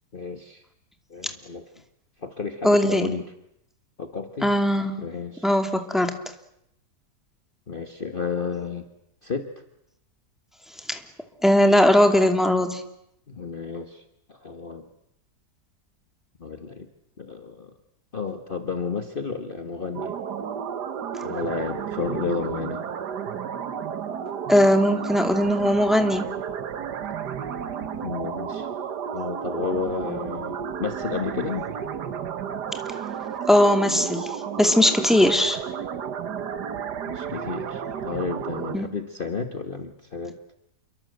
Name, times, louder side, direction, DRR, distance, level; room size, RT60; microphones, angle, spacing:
voice 1, 0.1-0.6 1.1-1.7 2.2-3.3 4.0-4.5 5.0-5.5 7.7-8.9 9.2-9.5 13.3-14.9 16.4-16.9 17.2-17.7 18.1-20.2 21.2-22.8 28.0-28.7 29.1-31.7 37.0-40.4, left 4 dB, 35° left, 6 dB, 1.6 m, -32 dB
voice 2, 2.6-3.1 4.4-5.0 5.4-6.2 10.9-11.0 11.4-12.8 24.5-26.3 33.5-34.3 34.6-35.6 38.7-38.9, left 1 dB, ahead, 6 dB, 2.5 m, -19 dB
sound 1, 19.9-38.8, right 7 dB, 85° right, 1.9 m, -32 dB
28.5 x 23.5 x 8.0 m, 0.78 s
omnidirectional pair, 1.7 m